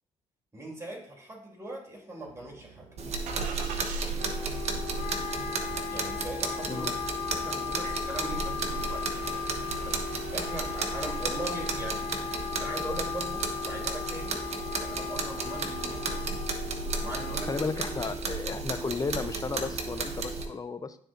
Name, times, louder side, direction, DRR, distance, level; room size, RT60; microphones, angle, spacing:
voice 1, 0.5-2.9 5.9-6.9 7.3-9.2 9.8-12.1 12.6-14.4 14.8-16.4 17.0-18.2, right 1 dB, 20° right, -3 dB, 3.1 m, -40 dB
Engine starting, 2.2-12.9, right 5 dB, 80° right, 0.8 m, -47 dB
sound 1, 3.0-20.4, right 3 dB, 55° right, 1.1 m, -33 dB
Wind instrument woodwind instrument, 4.2-18.2, left 10 dB, 75° left, 0.9 m, -37 dB
voice 2, 17.5-21.0, left 4 dB, 25° left, 11 dB, 0.7 m, -34 dB
12.0 x 4.2 x 2.6 m, 0.64 s
supercardioid pair, 60°, 13 cm